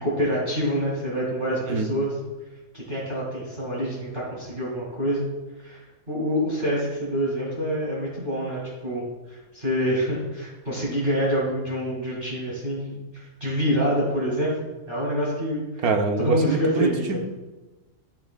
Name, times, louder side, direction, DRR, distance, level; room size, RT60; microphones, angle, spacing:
voice 1, 0.0-2.1 2.7-5.3 5.6-14.6 14.9-15.8 16.2-17.2, equal, 30° right, -6 dB, 2.1 m, -26 dB
voice 2, 1.6-1.9 15.8-17.2, right 4 dB, 65° right, 5 dB, 1.1 m, -24 dB
12.5 x 5.9 x 2.2 m, 1.1 s
omnidirectional pair, 2.0 m